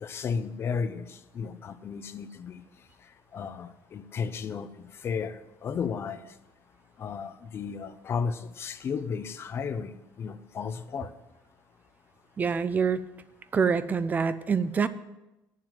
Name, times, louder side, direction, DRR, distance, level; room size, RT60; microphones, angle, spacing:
voice 1, 0.0-2.6 3.3-6.2 7.0-11.1, left 6 dB, 35° left, 12 dB, 0.7 m, -34 dB
voice 2, 12.4-13.0 13.5-14.9, right 6 dB, 25° right, 14 dB, 0.5 m, -25 dB
9.3 x 7.4 x 7.9 m, 0.98 s
cardioid pair, 160°, 7 cm